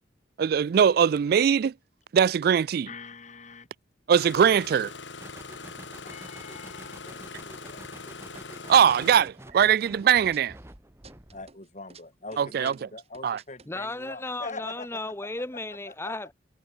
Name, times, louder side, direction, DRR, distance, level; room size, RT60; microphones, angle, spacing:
voice 1, 0.4-1.7 2.1-2.9 4.1-4.9 8.7-10.5 12.4-12.7 13.2-13.4, right 8 dB, 55° right, 0.3 m, -21 dB
voice 2, 2.9-3.7 6.0-7.8 8.6-9.0 11.3-15.0 15.7-16.1, left 3 dB, 40° left, 4.7 m, -43 dB
Engine starting, 4.1-9.2, left 4 dB, 80° left, 2.8 m, -42 dB
sound 1, 5.2-11.5, right 1 dB, 15° right, 1.6 m, -49 dB
sound 2, 8.3-10.7 11.0-12.0 12.3-13.7, right 5 dB, 35° right, 3.0 m, -53 dB
voice 3, 13.7-16.3, left 2 dB, 15° left, 1.1 m, -35 dB
head